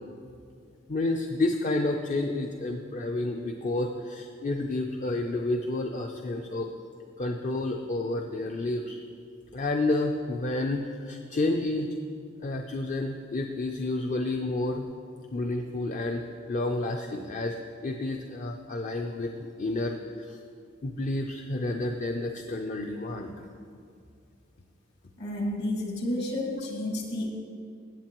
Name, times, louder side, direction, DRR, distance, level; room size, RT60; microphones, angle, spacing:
voice 1, 0.9-6.7 7.2-9.0 9.5-11.9 12.4-14.9 15.3-17.5 17.8-20.4 20.8-23.5, left 2 dB, 40° left, 3 dB, 0.5 m, -30 dB
voice 2, 25.2-27.3, left 1 dB, 55° left, -1 dB, 2.1 m, -31 dB
16.0 x 8.0 x 3.0 m, 2.3 s
head